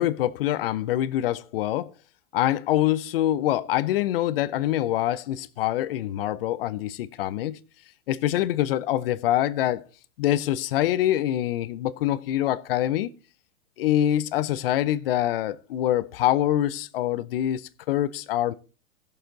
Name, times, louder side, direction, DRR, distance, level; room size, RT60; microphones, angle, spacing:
voice 1, 0.0-1.9 2.3-7.6 8.1-9.8 10.2-13.1 13.8-17.6 17.9-18.5, left 13 dB, 45° left, 0.6 m, -25 dB
16.0 x 6.9 x 3.8 m
hypercardioid pair, 150°, 42 cm